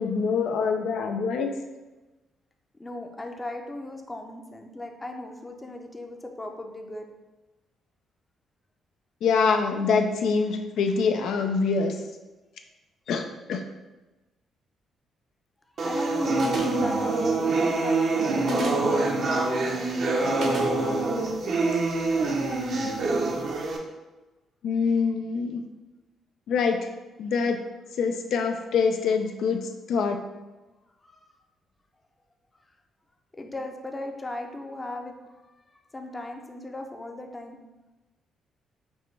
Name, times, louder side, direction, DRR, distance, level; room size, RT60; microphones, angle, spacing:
voice 1, 0.0-1.5 9.2-12.0 13.1-13.6 24.6-25.6 26.5-26.8 27.2-27.6 28.0-29.6 29.9-30.2, left 5 dB, 75° left, 5 dB, 0.3 m, -25 dB
voice 2, 2.8-7.1 15.8-19.5 31.0-31.3 33.3-35.1 35.4-35.5 35.9-37.6, left 2 dB, 20° left, 4 dB, 0.5 m, -37 dB
sound 1, 15.8-23.8, right 3 dB, 55° right, 0.6 m, -25 dB
sound 2, 16.4-16.9 18.4-18.9 20.4-20.7, right 2 dB, 70° right, 1.0 m, -33 dB
6.0 x 2.2 x 3.2 m, 1.1 s
cardioid pair, 90°, 0 cm